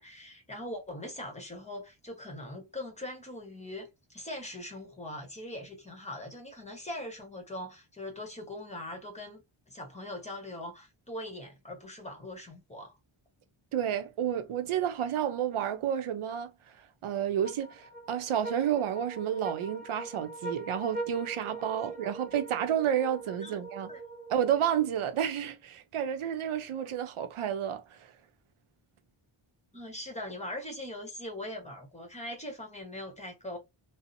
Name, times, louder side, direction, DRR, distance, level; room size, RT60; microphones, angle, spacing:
voice 1, 0.0-12.9 23.4-23.6 23.9-24.0 29.7-33.6, left 1 dB, 15° left, 0.9 m, -41 dB
voice 2, 13.7-16.5 17.0-23.9 24.3-28.0, right 9 dB, 80° right, 0.6 m, -30 dB
sound 1, 17.4-25.0, right 2 dB, 20° right, 0.6 m, -42 dB
2.7 x 2.0 x 2.5 m
wide cardioid pair, 120°, 49 cm